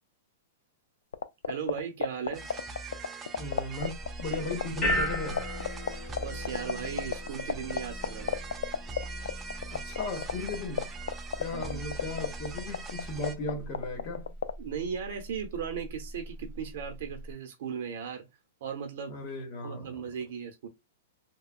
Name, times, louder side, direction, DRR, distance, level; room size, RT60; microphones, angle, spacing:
sound 1, 1.1-14.5, left 8 dB, 85° left, 0.3 m, -28 dB
voice 1, 1.5-2.4 6.2-8.4 11.5-11.8 14.6-18.2 18.6-19.2 19.6-20.7, right 7 dB, 55° right, 0.8 m, -37 dB
sound 2, 2.3-13.3, right 3 dB, 15° right, 0.3 m, -42 dB
voice 2, 3.4-3.9 4.2-5.5 9.7-10.9 11.4-14.3 19.1-20.0, left 2 dB, 30° left, 0.8 m, -36 dB
sound 3, 3.8-17.3, equal, 15° left, 1.2 m, -39 dB
2.9 x 2.2 x 2.4 m
supercardioid pair, 165°, 0 cm